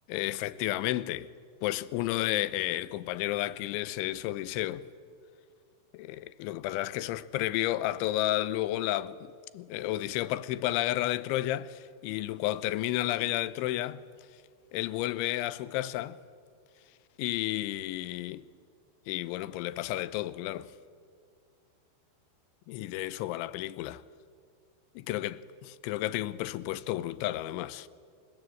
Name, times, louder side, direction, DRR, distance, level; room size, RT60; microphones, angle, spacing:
voice 1, 0.1-1.3 1.6-4.9 5.9-14.0 14.7-16.2 17.2-18.5 19.1-20.7 22.7-24.0 25.0-25.4 25.8-27.9, left 15 dB, 80° left, 3.2 m, -32 dB
30.0 x 25.0 x 7.9 m
omnidirectional pair, 5.4 m